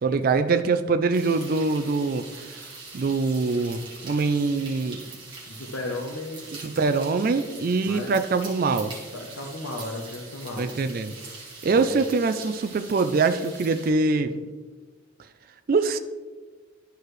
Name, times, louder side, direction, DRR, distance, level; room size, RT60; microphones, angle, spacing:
voice 1, 0.0-2.3 2.9-5.0 6.6-8.9 10.6-11.1 11.6-14.5 15.7-16.0, right 4 dB, 45° right, 9 dB, 0.4 m, -23 dB
sound 1, 1.1-13.9, right 3 dB, 25° right, 1.6 m, -43 dB
voice 2, 5.5-6.5 7.8-8.2 9.1-10.7 11.7-12.0, left 2 dB, 85° left, 0 dB, 0.8 m, -35 dB
11.5 x 4.7 x 3.2 m, 1.3 s
head